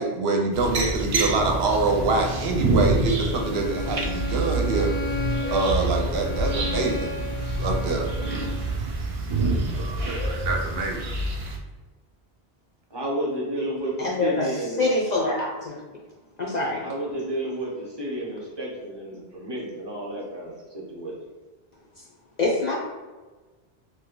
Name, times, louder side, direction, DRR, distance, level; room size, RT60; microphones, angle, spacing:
voice 1, 0.0-4.9 5.5-7.2 7.6-8.1 10.1-11.1, right 3 dB, 75° right, 2 dB, 0.8 m, -25 dB
sound 1, 0.5-11.6, right 2 dB, 55° right, 0.4 m, -27 dB
Bowed string instrument, 3.2-8.7, left 2 dB, 90° left, 1.0 m, -34 dB
voice 2, 12.9-14.9 16.4-21.2, right 1 dB, 25° right, -4 dB, 0.7 m, -31 dB
voice 3, 14.0-14.5 14.8-15.7 16.4-16.9 22.4-22.7, left 2 dB, 55° left, -3 dB, 0.5 m, -24 dB
2.8 x 2.2 x 3.7 m, 1.3 s
omnidirectional pair, 1.1 m